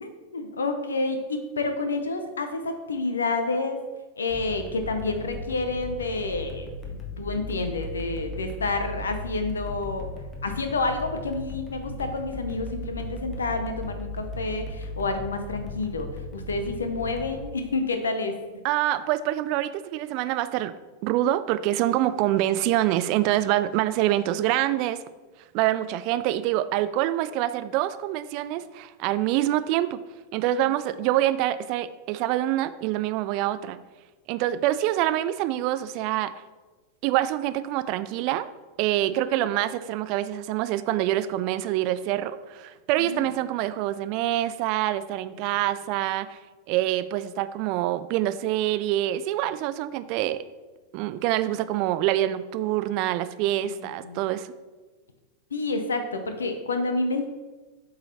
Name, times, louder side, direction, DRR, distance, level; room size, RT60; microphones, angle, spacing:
voice 1, 0.0-3.8 4.2-10.1 10.4-18.4 43.0-43.3 53.6-54.2 55.5-57.3, left 3 dB, 70° left, 7 dB, 0.6 m, -29 dB
sound 1, 4.3-17.5, left 1 dB, 20° left, 1.1 m, -37 dB
voice 2, 18.6-20.7 21.0-25.0 25.5-30.0 30.3-33.8 34.3-36.3 37.0-38.5 38.8-46.4 46.7-50.4 50.9-54.5, right 13 dB, 45° right, 14 dB, 0.3 m, -25 dB
7.9 x 3.9 x 4.1 m, 1.3 s
figure-of-eight pair, 90°, 0 cm